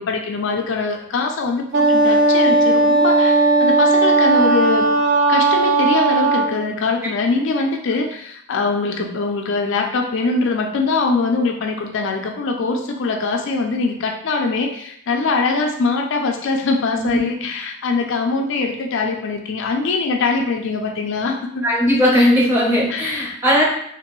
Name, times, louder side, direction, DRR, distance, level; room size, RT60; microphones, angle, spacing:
voice 1, 0.0-4.9 5.3-21.6 22.9-23.4, left 4 dB, 55° left, 3 dB, 0.3 m, -22 dB
Wind instrument woodwind instrument, 1.7-6.6, right 3 dB, 55° right, 0.4 m, -16 dB
voice 2, 21.6-23.7, equal, 10° right, -5 dB, 0.7 m, -17 dB
2.9 x 2.5 x 3.0 m, 0.70 s
head